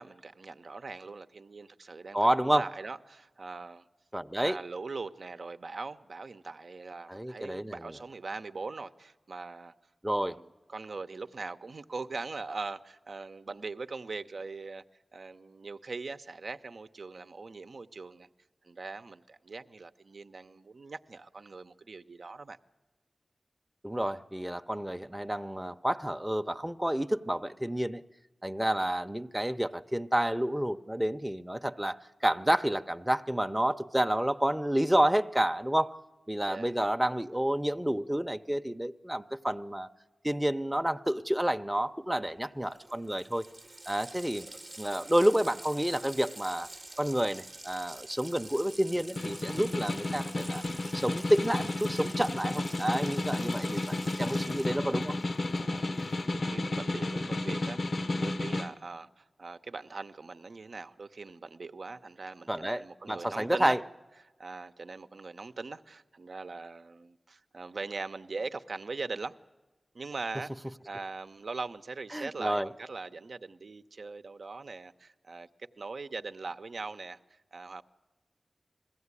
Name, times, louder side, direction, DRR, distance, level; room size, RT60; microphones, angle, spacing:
voice 1, 0.0-3.9 4.4-9.7 10.1-14.8 15.1-18.3 18.6-22.6 36.5-36.7 55.5-63.8 64.2-69.4 69.9-70.5 70.8-75.5 75.8-77.8, right 3 dB, 75° right, 0.7 m, -41 dB
voice 2, 2.1-2.7 4.1-4.6 7.1-7.8 10.0-10.4 23.8-28.0 28.4-35.9 36.3-39.9 40.2-43.4 43.9-44.5 44.8-46.7 47.0-50.6 50.9-55.2 62.5-63.8 72.1-72.7, right 1 dB, 10° right, 0.7 m, -29 dB
Water tap faucet, 42.4-42.5 42.7-56.4, right 2 dB, 45° right, 0.8 m, -48 dB
Snare drum, 48.9-58.7, left 2 dB, 75° left, 0.8 m, -32 dB
21.5 x 16.0 x 9.7 m
cardioid pair, 50°, 0 cm